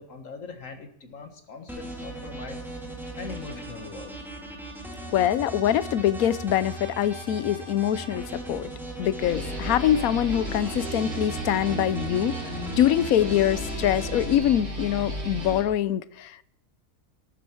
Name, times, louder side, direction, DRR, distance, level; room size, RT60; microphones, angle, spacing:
voice 1, 0.0-2.6 3.2-4.1, left 4 dB, 65° left, 1.9 m, -41 dB
sound 1, 1.7-14.3, right 1 dB, ahead, 2.4 m, -38 dB
voice 2, 5.1-8.7 9.0-12.4 12.7-16.4, left 11 dB, 90° left, 1.1 m, -24 dB
sound 2, 9.2-15.6, right 1 dB, 90° right, 3.6 m, -34 dB
13.0 x 9.6 x 4.5 m
omnidirectional pair, 1.5 m